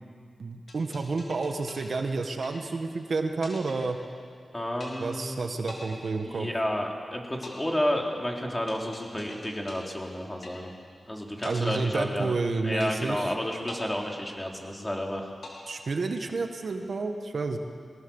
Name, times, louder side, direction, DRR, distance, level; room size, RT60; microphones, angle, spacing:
voice 1, 0.4-4.0 5.0-6.5 11.4-13.3 15.7-17.6, right 3 dB, 65° right, 5 dB, 1.7 m, -30 dB
sound 1, 0.7-3.0 3.4-4.5 4.8-5.3 5.7-6.9 7.4-11.0 11.4-12.5 12.8-13.3 13.7-14.9 15.4-16.4, left 2 dB, 65° left, 5.1 m, -46 dB
voice 2, 4.5-5.5 6.2-10.7 11.0-12.3 12.6-15.3, left 1 dB, 20° left, 0 dB, 3.8 m, -31 dB
23.0 x 18.5 x 7.3 m, 2.2 s
cardioid pair, 55°, 0 cm